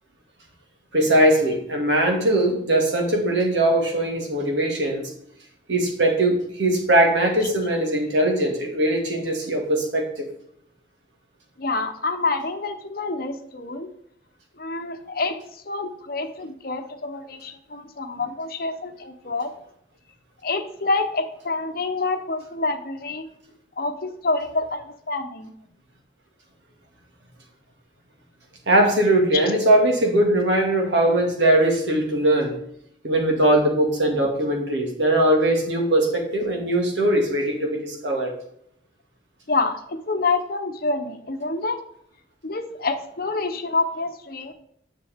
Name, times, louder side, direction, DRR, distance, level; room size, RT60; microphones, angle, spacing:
voice 1, 0.9-5.1 5.7-10.3 28.7-32.5 33.0-38.3, right 1 dB, 80° right, 1 dB, 2.2 m, -20 dB
voice 2, 11.6-13.9 14.6-19.5 20.4-23.3 23.8-25.5 39.5-41.8 42.4-44.5, left 3 dB, 55° left, 7 dB, 0.9 m, -27 dB
10.0 x 6.7 x 3.6 m, 0.71 s
head